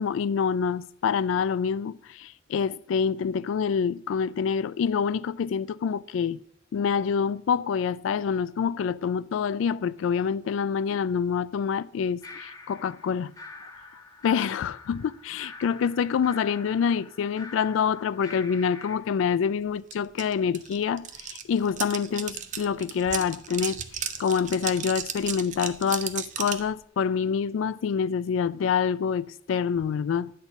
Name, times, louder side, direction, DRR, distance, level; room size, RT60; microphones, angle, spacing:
voice 1, 0.0-6.4 6.7-13.3 14.2-30.3, left 6 dB, 85° left, 0.3 m, -26 dB
sound 1, 12.2-19.0, left 3 dB, 20° left, 0.8 m, -45 dB
sound 2, 19.9-20.0 20.2-26.7, right 8 dB, 40° right, 0.6 m, -34 dB
9.7 x 4.2 x 7.0 m
head